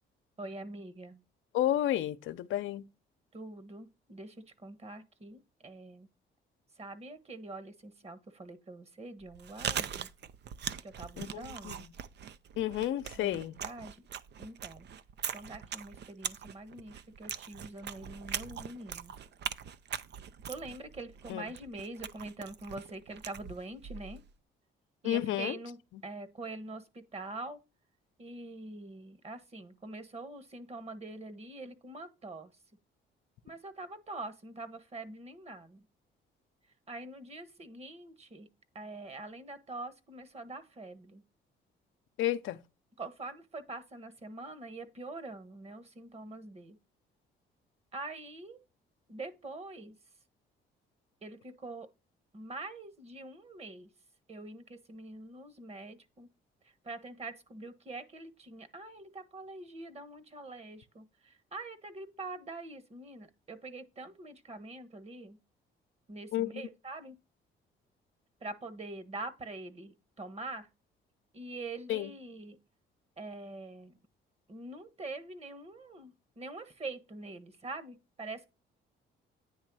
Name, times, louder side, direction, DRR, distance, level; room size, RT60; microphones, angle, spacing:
voice 1, 0.4-1.2 3.3-6.1 6.8-10.1 10.8-11.9 13.2-14.1 14.4-14.9 15.3-19.1 20.5-24.2 25.0-25.8 26.0-27.6 28.2-32.5 33.4-35.8 36.9-38.5 38.7-41.2 43.0-46.8 47.9-48.6 49.1-50.0 51.2-51.9 52.3-53.9 54.3-56.3 56.6-65.4 66.1-67.2 68.4-70.7 71.3-72.6 73.2-74.0 74.5-78.5, right 2 dB, 30° right, 1.3 m, -44 dB
voice 2, 1.5-2.8 11.2-11.7 12.6-13.6 21.3-21.4 25.0-25.6 42.2-42.6 66.3-66.5 71.9-72.1, left 13 dB, 80° left, 0.7 m, -31 dB
Chewing mastication, 9.2-24.3, right 8 dB, 60° right, 0.6 m, -41 dB
9.4 x 3.2 x 6.1 m
cardioid pair, 90°, 20 cm